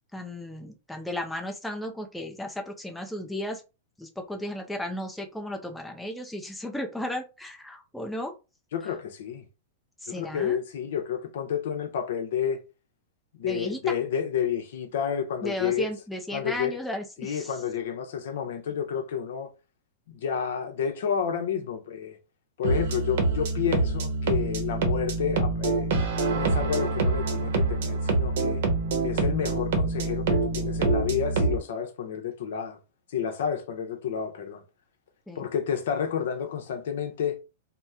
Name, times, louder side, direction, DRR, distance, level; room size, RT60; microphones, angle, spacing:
voice 1, 0.1-3.6 4.0-8.3 10.0-10.6 13.4-13.9 15.4-17.6 35.3-35.5, left 1 dB, ahead, 0.4 m, -34 dB
voice 2, 8.7-9.5 10.1-12.6 13.4-15.9 16.3-16.8 17.2-19.5 20.1-22.2 22.6-25.9 26.3-28.6 29.0-32.8 33.1-34.6 35.4-37.4, left 8 dB, 70° left, 0.7 m, -30 dB
sound 1, 22.6-31.6, right 3 dB, 60° right, 0.8 m, -26 dB
2.8 x 2.1 x 3.5 m
supercardioid pair, 165°, 0 cm